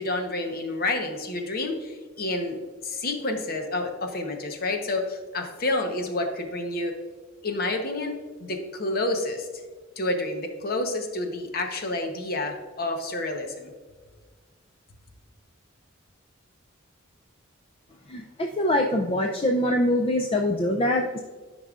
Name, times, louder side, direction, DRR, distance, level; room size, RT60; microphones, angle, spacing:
voice 1, 0.0-2.6 2.8-6.9 7.4-9.5 10.0-13.7, left 2 dB, 45° left, 4 dB, 0.9 m, -29 dB
voice 2, 18.1-21.2, left 1 dB, 25° left, 2 dB, 0.4 m, -24 dB
12.0 x 5.4 x 2.4 m, 1.4 s
head